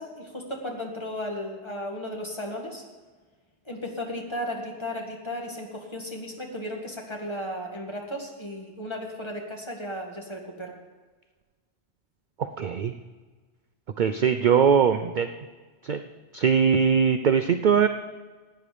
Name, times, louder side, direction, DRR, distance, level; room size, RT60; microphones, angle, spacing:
voice 1, 0.0-2.8 3.7-10.8, left 1 dB, 25° left, 0 dB, 1.9 m, -35 dB
voice 2, 12.4-12.9 14.0-15.3 15.9-16.0 16.3-17.9, right 7 dB, 55° right, 9 dB, 0.6 m, -21 dB
16.0 x 9.5 x 5.0 m, 1.4 s
omnidirectional pair, 1.2 m